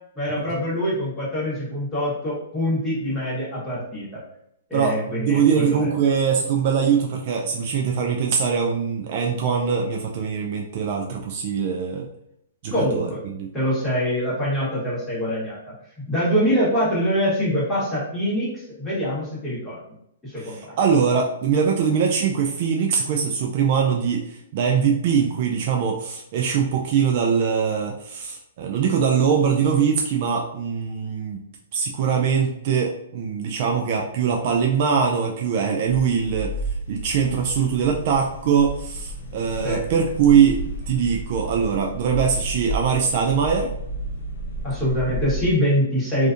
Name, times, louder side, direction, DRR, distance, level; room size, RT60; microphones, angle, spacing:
voice 1, 0.1-4.1 4.7-5.9 12.7-13.2 13.5-15.7 16.1-19.8 20.2-20.6 39.6-39.8 44.6-46.3, equal, 10° left, -10 dB, 1.3 m, -24 dB
voice 2, 4.7-12.1 12.6-13.5 20.4-31.4 31.7-36.5 36.9-40.6 40.9-43.7, right 6 dB, 45° right, 1 dB, 0.3 m, -22 dB
sound 1, 35.8-45.6, right 2 dB, 65° left, 1.0 m, -32 dB
2.5 x 2.4 x 2.5 m, 0.77 s
hypercardioid pair, 155°, 0 cm